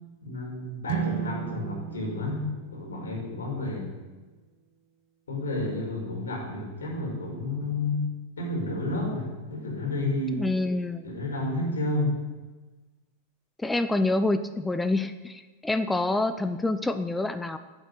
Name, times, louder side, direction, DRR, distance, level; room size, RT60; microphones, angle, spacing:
voice 1, 0.2-2.4 2.7-3.9 5.3-8.0 8.4-10.4 11.0-12.2, left 2 dB, 70° left, -1 dB, 5.3 m, -31 dB
sound 1, 0.8-4.1, right 8 dB, 50° right, 1.3 m, -35 dB
voice 2, 10.3-11.1 13.6-17.6, left 2 dB, 10° left, 11 dB, 0.8 m, -27 dB
14.5 x 8.7 x 8.4 m, 1.2 s
figure-of-eight pair, 90°, 0 cm